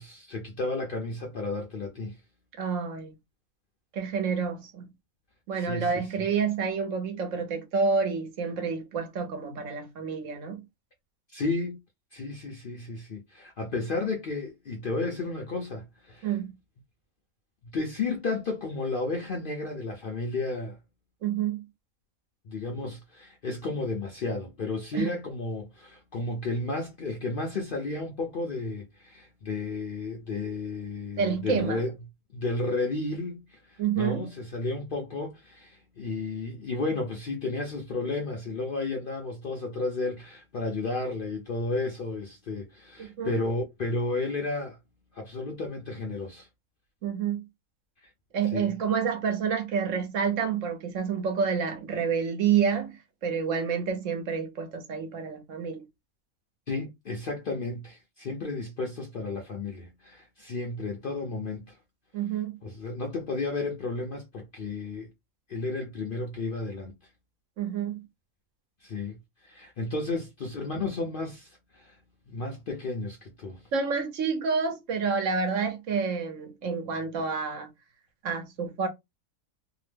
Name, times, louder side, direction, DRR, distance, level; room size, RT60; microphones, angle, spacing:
voice 1, 0.0-2.2 5.5-6.1 11.3-11.8 12.1-16.3 17.7-20.8 22.4-31.9 32.3-44.8 45.1-46.5 48.0-48.1 48.5-48.7 56.7-61.8 62.6-65.1 65.5-66.9 68.8-69.2 69.4-72.0 72.3-73.6, left 3 dB, 60° left, 0.6 m, -33 dB
voice 2, 2.6-3.1 3.9-4.9 5.5-10.6 16.2-16.5 21.2-21.6 24.9-25.1 31.2-31.8 33.8-34.3 43.0-43.4 47.0-47.4 48.3-55.8 62.1-62.5 67.6-68.0 73.7-77.7 78.2-78.9, right 6 dB, 65° right, 1.1 m, -28 dB
2.8 x 2.1 x 3.2 m
omnidirectional pair, 1.5 m